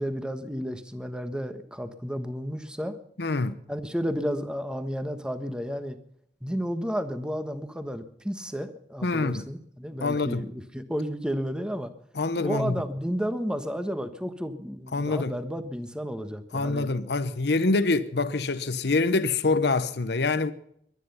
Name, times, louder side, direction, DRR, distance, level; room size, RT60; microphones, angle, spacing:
voice 1, 0.0-3.0 3.7-6.0 6.4-11.9 12.4-16.9, equal, 5° right, 1.3 m, -32 dB
voice 2, 3.2-3.5 9.0-9.4 10.0-10.5 12.2-12.8 14.9-15.3 16.5-20.5, left 3 dB, 65° left, 0.9 m, -25 dB
22.5 x 10.0 x 5.6 m
head